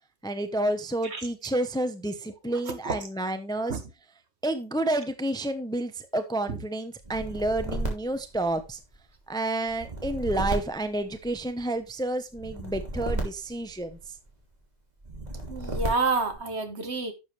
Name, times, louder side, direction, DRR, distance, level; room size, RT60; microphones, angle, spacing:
voice 1, 0.2-3.7 4.4-8.8 9.3-14.0, right 1 dB, 5° left, 0.8 m, -30 dB
sound 1, 7.0-9.0 9.7-11.6 12.3-14.3 15.0-16.4, right 2 dB, 35° right, 3.0 m, -34 dB
voice 2, 15.5-17.1, right 3 dB, 60° right, 1.7 m, -28 dB
11.0 x 7.3 x 3.3 m
omnidirectional pair, 1.3 m